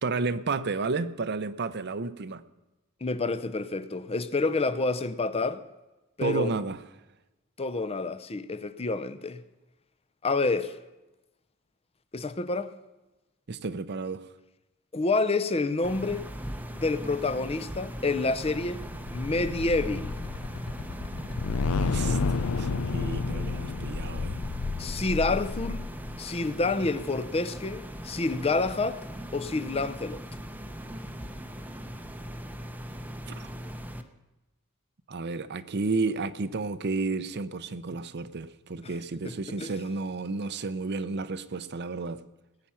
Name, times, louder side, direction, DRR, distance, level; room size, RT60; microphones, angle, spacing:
voice 1, 0.0-2.4 6.2-6.8 13.5-14.2 21.8-24.4 33.3-33.5 35.1-42.2, right 3 dB, 50° right, 0.7 m, -32 dB
voice 2, 3.0-5.6 6.2-6.5 7.6-9.4 10.2-10.8 12.1-12.7 14.9-16.3 16.7-18.8 19.1-20.1 24.8-25.9 26.2-29.0 29.3-30.2 39.2-39.7, left 3 dB, 30° left, 0.7 m, -28 dB
sound 1, 15.8-34.0, equal, 10° right, 0.8 m, -39 dB
sound 2, 17.8-26.2, left 4 dB, 85° left, 0.6 m, -31 dB
19.5 x 8.9 x 5.7 m
head